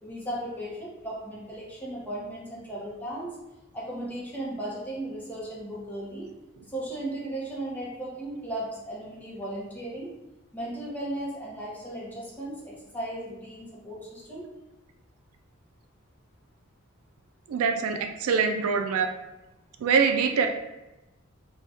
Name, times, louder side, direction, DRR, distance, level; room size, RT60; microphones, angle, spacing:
voice 1, 0.0-3.3 3.7-6.3 6.7-10.1 10.5-14.5, right 1 dB, 10° left, -6 dB, 0.8 m, -36 dB
voice 2, 17.5-19.1 19.8-20.5, right 5 dB, 90° right, 5 dB, 0.3 m, -24 dB
2.6 x 2.3 x 3.4 m, 0.99 s
head